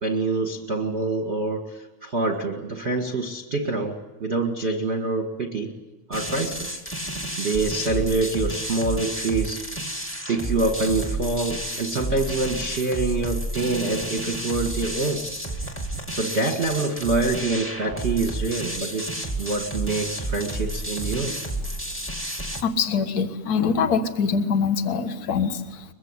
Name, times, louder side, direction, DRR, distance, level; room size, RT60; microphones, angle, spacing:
voice 1, 0.0-5.7 6.1-6.8 7.4-9.6 10.3-15.2 16.1-21.4, right 3 dB, 25° right, 3 dB, 1.5 m, -26 dB
sound 1, 6.1-22.6, right 1 dB, 5° left, 1.6 m, -31 dB
voice 2, 22.6-25.8, left 5 dB, 45° left, 8 dB, 1.3 m, -24 dB
23.0 x 23.0 x 9.7 m, 1.1 s
omnidirectional pair, 3.7 m